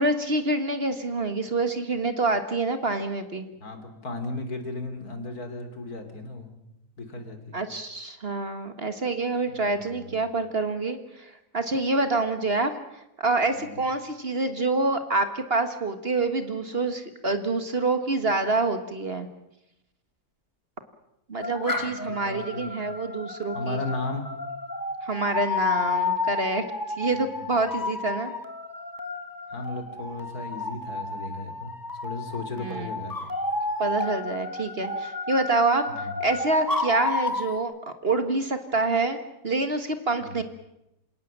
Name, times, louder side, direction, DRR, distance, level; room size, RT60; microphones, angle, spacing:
voice 1, 0.0-3.5 7.5-12.7 13.2-19.3 21.3-23.8 25.0-26.6 27.0-28.3 32.6-32.9 33.8-39.2 39.4-40.4, right 3 dB, 40° right, 8 dB, 1.8 m, -27 dB
voice 2, 3.6-6.5 7.0-7.6 9.5-10.2 13.6-13.8 21.8-22.7 23.5-24.3 27.1-27.6 29.5-31.7 32.0-33.3 35.9-36.2 40.2-40.4, left 2 dB, 70° left, 7 dB, 3.6 m, -36 dB
sound 1, 21.4-37.6, left 3 dB, 15° left, 1.7 m, -31 dB
27.5 x 18.0 x 7.5 m, 0.86 s
omnidirectional pair, 1.7 m